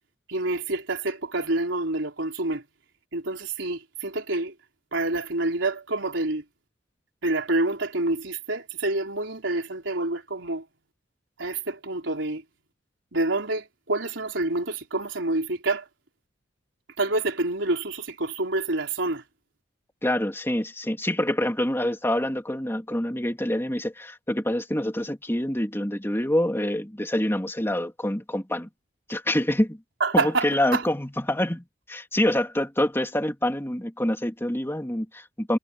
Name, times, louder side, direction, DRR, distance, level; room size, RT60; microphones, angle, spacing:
voice 1, 0.3-2.6 3.1-4.5 4.9-6.4 7.2-10.6 11.4-12.4 13.1-15.9 17.0-19.2 30.0-30.9, right 2 dB, 75° right, 4.2 m, -27 dB
voice 2, 20.0-28.7 29.1-29.8 30.1-35.6, left 1 dB, 15° left, 2.8 m, -26 dB
head